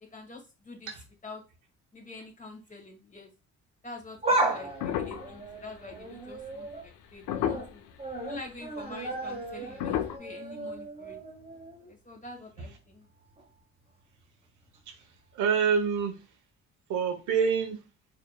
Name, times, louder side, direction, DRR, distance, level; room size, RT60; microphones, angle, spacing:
voice 1, 0.0-0.9 1.2-1.4 1.9-3.3 3.8-7.8 8.2-11.2 11.9-13.1, left 3 dB, 25° left, 1.5 m, -46 dB
sound 1, 4.0-6.8 7.2-7.7 8.0-11.9 12.3-12.4 13.4-13.5, right 2 dB, 20° right, 1.1 m, -34 dB
sound 2, 4.8-6.1 6.9-7.0 7.3-7.9 8.7-8.8 9.8-10.2, left 10 dB, 85° left, 0.6 m, -31 dB
voice 2, 14.9-16.2 16.9-17.8, right 6 dB, 80° right, 1.1 m, -27 dB
4.9 x 2.9 x 2.3 m
cardioid pair, 90°, 30 cm